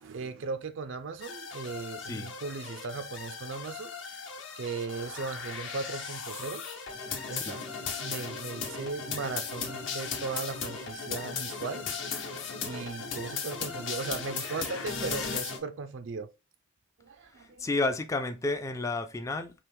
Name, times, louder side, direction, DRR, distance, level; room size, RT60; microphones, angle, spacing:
voice 1, 0.0-3.9 4.6-6.7 7.3-7.7 8.0-11.9 12.2-16.3 17.0-17.7, right 4 dB, 70° right, 0.4 m, -37 dB
sound 1, 1.2-15.6, left 5 dB, 65° left, 0.9 m, -37 dB
voice 2, 17.4-19.5, left 2 dB, 15° left, 0.3 m, -31 dB
4.5 x 2.8 x 3.4 m
head